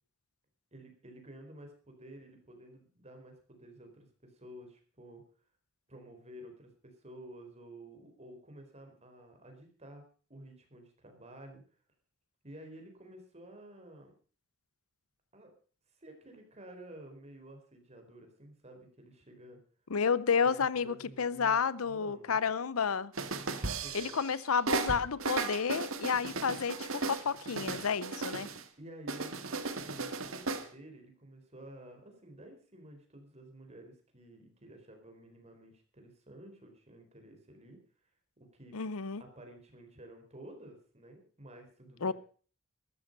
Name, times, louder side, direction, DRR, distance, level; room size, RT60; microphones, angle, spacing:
voice 1, 0.7-5.2 5.9-10.0 10.3-11.6 12.4-14.1 15.3-15.5 16.0-19.6 20.4-22.4 23.4-24.1 28.8-37.8 38.5-38.8 39.2-42.1, right 1 dB, 30° right, 4.3 m, -52 dB
voice 2, 19.9-23.1 23.9-28.5 38.7-39.2 42.0-42.1, left 6 dB, 85° left, 0.7 m, -31 dB
sound 1, 23.1-24.3 24.7-28.6 29.1-30.7, right 3 dB, 70° right, 1.8 m, -36 dB
13.5 x 13.5 x 5.3 m
head